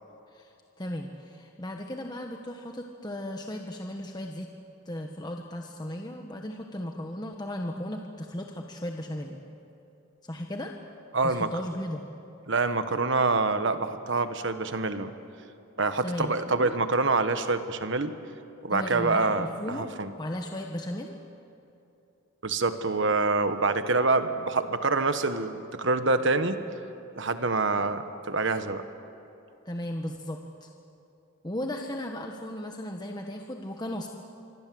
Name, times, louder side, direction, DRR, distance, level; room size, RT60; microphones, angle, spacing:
voice 1, 0.3-4.5 4.8-9.4 10.2-10.7 11.2-12.0 16.0-16.8 18.7-19.9 20.2-21.2 29.6-30.7 31.4-34.1, left 1 dB, 20° left, 2 dB, 1.2 m, -36 dB
voice 2, 11.1-11.5 12.5-15.1 15.8-18.1 18.6-20.1 22.4-26.6 27.2-28.8, right 3 dB, 60° right, 9 dB, 1.3 m, -26 dB
26.5 x 23.5 x 7.8 m, 2.8 s
head